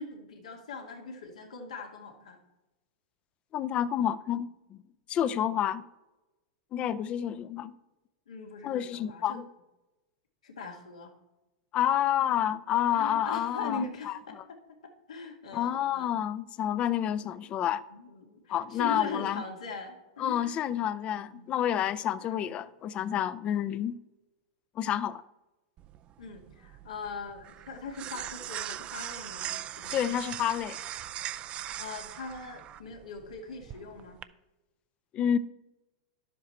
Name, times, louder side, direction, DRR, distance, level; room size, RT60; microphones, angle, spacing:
voice 1, 0.0-2.4 5.2-5.4 8.3-9.4 10.4-11.1 12.9-14.6 15.1-16.1 17.1-17.4 17.9-20.7 21.3-21.5 22.2-22.5 23.5-23.7 26.2-30.1 31.5-34.2, left 4 dB, 90° left, 2.0 m, -41 dB
voice 2, 3.5-4.8 5.1-5.9 6.7-7.7 8.6-9.5 11.7-14.4 15.5-17.8 18.5-19.4 20.2-24.0 24.8-25.2 29.9-30.8 35.1-35.4, left 10 dB, 35° left, 0.5 m, -29 dB
sound 1, 25.8-34.2, right 12 dB, 35° right, 0.4 m, -40 dB
11.0 x 7.4 x 4.4 m
hypercardioid pair, 120°, 3 cm